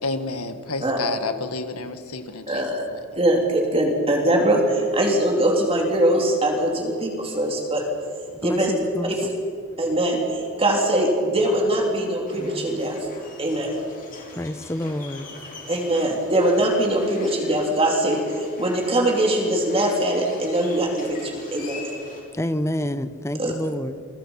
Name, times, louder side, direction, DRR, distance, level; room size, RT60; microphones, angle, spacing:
voice 1, 0.0-2.6 2.9-3.0, left 3 dB, 75° left, 1.8 m, -30 dB
voice 2, 2.5-2.8 3.1-7.8 8.4-8.7 9.0-9.2 9.8-13.7 15.7-21.9 23.4-23.5, right 1 dB, 25° right, 3.5 m, -22 dB
voice 3, 8.4-9.3 14.3-15.3 22.3-24.0, left 1 dB, 10° left, 0.8 m, -28 dB
sound 1, 12.3-22.2, left 2 dB, 40° left, 5.4 m, -42 dB
28.5 x 23.5 x 5.8 m
head